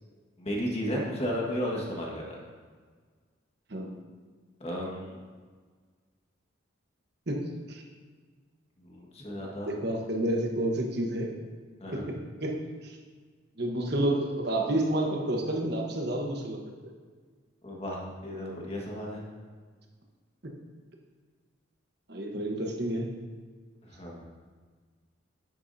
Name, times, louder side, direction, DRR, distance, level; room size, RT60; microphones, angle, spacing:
voice 1, 0.4-2.4 4.6-5.2 8.8-9.8 11.8-12.1 17.6-19.3 23.9-24.3, equal, 30° left, -2 dB, 1.6 m, -34 dB
voice 2, 7.3-7.8 9.4-11.3 11.9-12.5 12.8-13.0 13.6-16.6 22.1-23.1, right 1 dB, 55° right, 1 dB, 1.2 m, -30 dB
9.7 x 9.3 x 2.8 m, 1.5 s
head